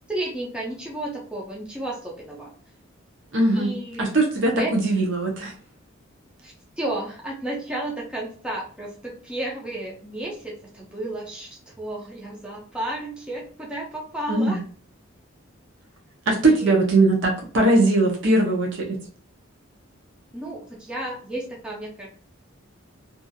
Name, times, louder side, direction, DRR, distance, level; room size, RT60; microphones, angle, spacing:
voice 1, 0.1-2.5 3.5-4.0 4.6-4.8 6.4-14.6 16.4-16.7 20.3-22.1, right 1 dB, 5° right, -4 dB, 0.5 m, -32 dB
voice 2, 3.3-3.7 4.0-5.5 14.3-14.6 16.3-19.0, right 2 dB, 65° right, -1 dB, 0.7 m, -20 dB
2.6 x 2.4 x 2.5 m, 0.44 s
head